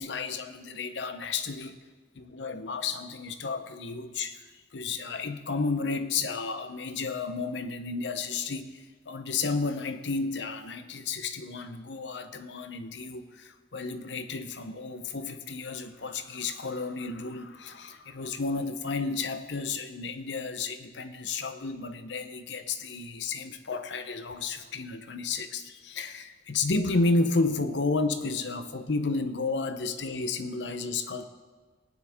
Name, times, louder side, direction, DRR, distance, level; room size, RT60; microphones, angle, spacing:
voice 1, 0.0-1.8 2.1-4.4 4.7-31.2, left 3 dB, 85° left, 9 dB, 0.8 m, -32 dB
18.5 x 9.6 x 3.6 m, 1.4 s
head